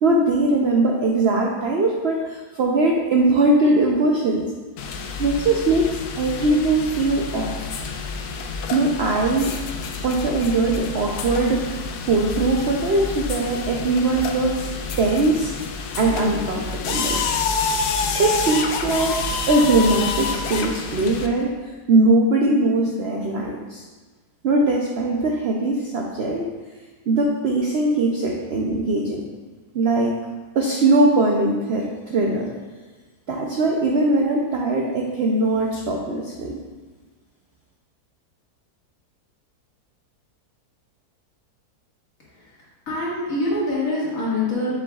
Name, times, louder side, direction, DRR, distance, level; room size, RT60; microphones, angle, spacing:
voice 1, 0.0-4.5 5.2-7.7 8.7-9.6 10.0-11.7 12.1-14.7 15.0-15.5 15.9-17.2 18.1-19.2 19.5-21.6 21.9-23.8 24.4-26.5 27.1-29.3 29.7-30.1 30.5-32.5 33.3-36.6, right 2 dB, 65° right, 0 dB, 0.6 m, -21 dB
sound 1, 4.8-21.3, left 4 dB, 75° left, 1.1 m, -28 dB
voice 2, 42.3-44.8, left 2 dB, 55° left, -7 dB, 2.3 m, -25 dB
7.2 x 6.9 x 2.4 m, 1.3 s
omnidirectional pair, 1.8 m